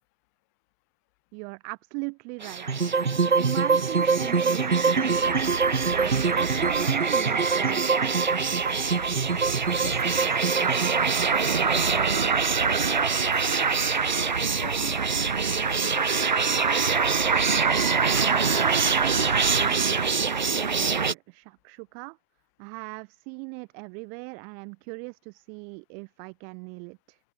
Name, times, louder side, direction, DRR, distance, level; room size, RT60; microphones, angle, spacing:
voice 1, 1.3-2.7 3.4-5.4 5.8-8.5 18.0-22.2 22.6-27.2, right 40 dB or more, 5° right, 1.1 m, -39 dB
sound 1, 2.4-21.1, right 5 dB, 40° right, 1.2 m, -25 dB
sound 2, 2.7-12.9, right 5 dB, 85° right, 1.1 m, -26 dB
voice 2, 9.7-13.6 14.1-16.4, left 30 dB, 15° left, 4.9 m, -46 dB
open air
figure-of-eight pair, 160°, 35 cm